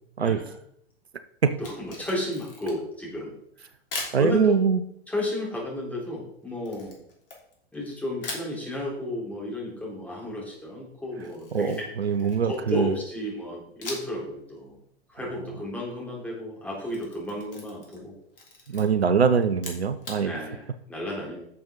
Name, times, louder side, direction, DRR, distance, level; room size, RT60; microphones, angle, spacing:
voice 1, 0.2-0.5 1.6-3.3 3.6-3.7 3.9-4.5 5.1-7.0 7.7-11.9 12.5-14.8 15.1-18.1 20.2-21.4, left 1 dB, 5° left, -3 dB, 3.9 m, -33 dB
Camera, 1.5-3.0 3.9-4.2 6.6-7.8 8.2-8.5 11.2-12.7 13.8-14.2 14.6-14.7 16.7-18.1 18.3-18.8 19.5-20.2, left 3 dB, 60° left, 3.1 m, -39 dB
voice 2, 4.1-4.8 11.5-13.0 18.7-20.3, right 6 dB, 75° right, 11 dB, 0.8 m, -23 dB
11.0 x 7.0 x 4.0 m, 0.71 s
figure-of-eight pair, 100°, 32 cm